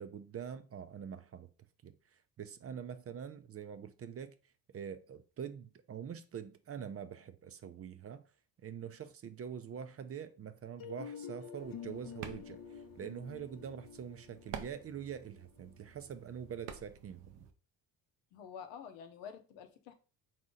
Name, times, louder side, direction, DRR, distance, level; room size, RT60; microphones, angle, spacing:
voice 1, 0.0-1.5 1.8-4.4 4.7-8.2 8.6-17.5, right 8 dB, 35° right, 0.4 m, -45 dB
sound 1, 10.8-16.6, left 8 dB, 50° left, 0.6 m, -49 dB
sound 2, 11.6-17.5, right 8 dB, 90° right, 0.7 m, -51 dB
voice 2, 18.3-19.9, left 7 dB, 85° left, 0.8 m, -48 dB
3.9 x 2.8 x 3.7 m
supercardioid pair, 60°, 45 cm